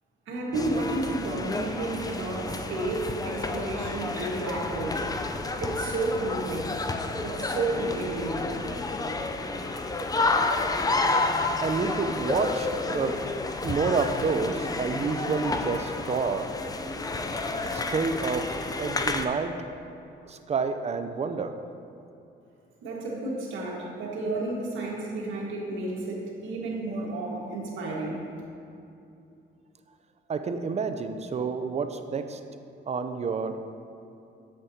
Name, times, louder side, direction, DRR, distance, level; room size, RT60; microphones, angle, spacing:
voice 1, 0.3-5.0 5.6-6.7 7.2-8.4 22.8-28.2, right 2 dB, 75° right, -4 dB, 1.6 m, -31 dB
sound 1, 0.5-19.2, left 3 dB, 20° left, 0.4 m, -30 dB
voice 2, 11.6-13.2 13.6-16.5 17.4-19.6 20.3-21.6 30.3-32.4 32.9-33.6, right 4 dB, 35° right, 8 dB, 0.5 m, -29 dB
8.4 x 7.3 x 2.8 m, 2.7 s
cardioid pair, 90°, 20 cm